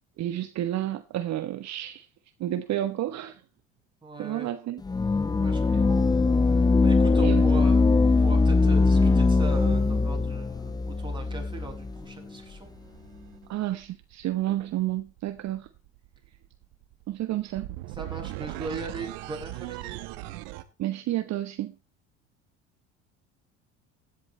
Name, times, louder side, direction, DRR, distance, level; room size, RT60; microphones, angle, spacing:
voice 1, 0.2-2.1 2.4-3.4 4.2-4.8 7.2-7.4 13.5-15.7 17.1-17.7 20.8-21.7, right 13 dB, 50° right, 1.1 m, -30 dB
voice 2, 4.0-4.5 5.4-6.2 6.8-7.7 8.0-12.7 17.9-20.4, right 3 dB, 15° right, 6.0 m, -39 dB
sound 1, 4.9-12.0, left 3 dB, 10° left, 0.5 m, -21 dB
sound 2, 6.0-6.1 7.4-9.5 11.3-20.6, right 16 dB, 75° right, 1.5 m, -42 dB
16.0 x 10.5 x 3.2 m
hypercardioid pair, 75°, 34 cm